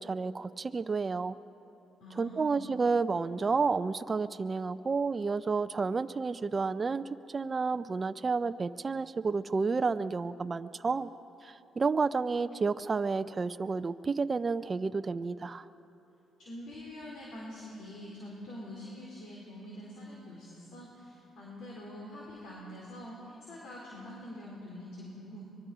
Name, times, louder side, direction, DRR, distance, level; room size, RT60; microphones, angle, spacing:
voice 1, 0.0-1.4 2.2-11.1 11.4-15.7, right 4 dB, 35° right, 11 dB, 0.5 m, -31 dB
voice 2, 2.0-2.7 16.4-25.4, left 1 dB, 75° left, -4 dB, 4.1 m, -45 dB
24.5 x 21.5 x 5.0 m, 2.9 s
cardioid pair, 90°, 0 cm